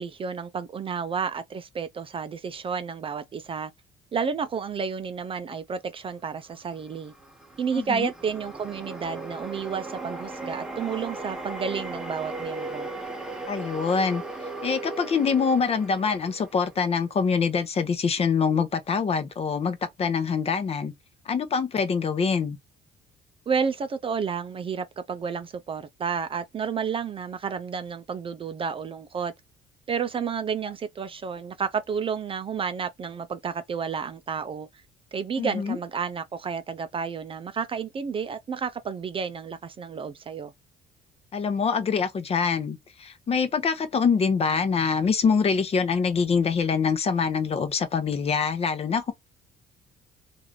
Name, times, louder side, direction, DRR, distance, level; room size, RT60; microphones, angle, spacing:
voice 1, 0.0-3.7 4.1-7.1 7.6-12.9 23.5-29.3 29.9-34.7 35.1-40.5, right 6 dB, 30° right, 0.4 m, -31 dB
sound 1, 6.7-17.1, right 2 dB, 5° right, 0.8 m, -37 dB
voice 2, 7.7-8.1 13.5-14.2 14.6-20.9 21.3-22.6 35.4-35.8 41.3-49.1, left 5 dB, 35° left, 0.8 m, -25 dB
3.1 x 2.5 x 3.7 m
cardioid pair, 110°, 17 cm